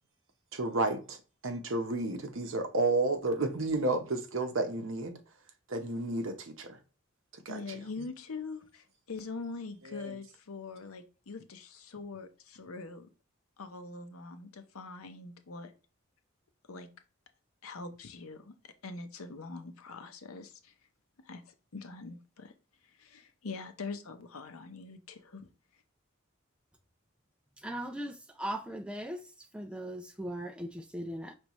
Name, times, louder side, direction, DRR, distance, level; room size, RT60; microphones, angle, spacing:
voice 1, 0.5-1.2 1.4-5.1 5.7-6.7 7.5-7.6 9.9-10.1, right 2 dB, 70° right, 0.8 m, -31 dB
voice 2, 7.5-13.1 13.6-15.7 16.7-16.9 17.6-18.5 18.8-20.7 21.2-22.5 22.9-25.5, left 4 dB, 90° left, 0.7 m, -43 dB
voice 3, 27.6-29.3 29.5-31.4, right 1 dB, 5° right, 0.4 m, -38 dB
5.3 x 3.3 x 3.0 m
head